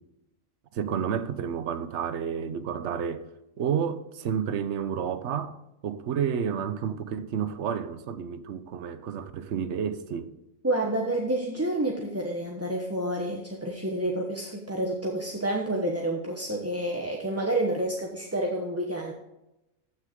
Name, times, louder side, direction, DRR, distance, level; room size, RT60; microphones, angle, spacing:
voice 1, 0.7-3.3 3.6-5.6 5.8-10.3, right 7 dB, 60° right, 1.0 m, -30 dB
voice 2, 10.6-19.1, right 1 dB, 15° right, 0.9 m, -29 dB
14.0 x 6.5 x 3.7 m
omnidirectional pair, 1.4 m